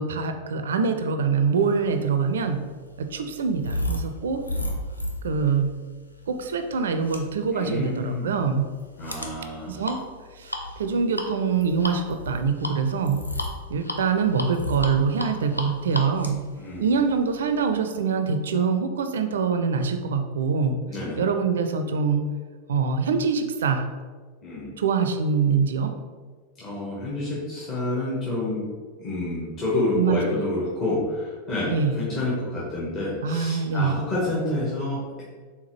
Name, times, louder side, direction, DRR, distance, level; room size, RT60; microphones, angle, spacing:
voice 1, 0.0-2.6 3.0-4.4 5.2-5.8 6.3-8.7 9.7-10.0 10.4-13.2 13.7-16.4 16.8-20.8 21.2-22.2 22.7-23.8 24.8-25.9 29.9-30.2 31.7-31.9 33.2-34.0, right 5 dB, 65° right, 7 dB, 0.4 m, -24 dB
sound 1, 2.0-17.7, left 1 dB, 85° left, 0.5 m, -34 dB
voice 2, 7.5-8.4 9.0-9.8 16.6-16.9 20.9-21.3 24.4-24.8 26.6-28.7 29.0-35.2, left 2 dB, 30° left, -7 dB, 1.1 m, -28 dB
4.3 x 3.6 x 3.0 m, 1.5 s
figure-of-eight pair, 90°, 0 cm